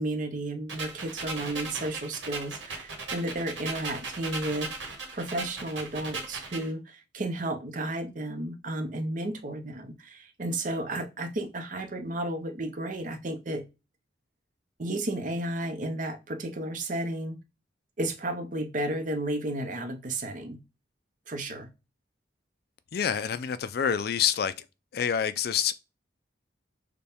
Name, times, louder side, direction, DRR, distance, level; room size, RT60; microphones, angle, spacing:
voice 1, 0.0-13.7 14.8-17.4 18.0-20.6 21.3-21.7, right 1 dB, 45° right, 0.7 m, -33 dB
sound 1, 0.7-6.7, right 3 dB, 85° right, 1.6 m, -37 dB
voice 2, 22.9-24.6 24.9-25.7, left 8 dB, 55° left, 0.4 m, -27 dB
6.6 x 2.3 x 3.5 m
head